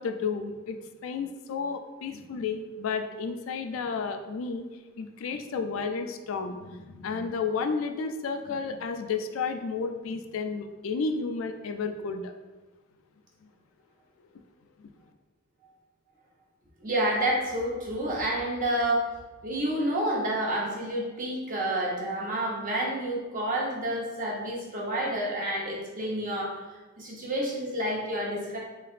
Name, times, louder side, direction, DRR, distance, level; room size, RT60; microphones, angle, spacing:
voice 1, 0.0-4.6 5.0-12.3 14.8-14.9, left 5 dB, 75° left, 6 dB, 0.3 m, -32 dB
voice 2, 16.8-19.1 19.4-26.5 27.0-28.6, right 1 dB, 40° right, -3 dB, 0.9 m, -29 dB
3.7 x 3.2 x 2.4 m, 1.2 s
head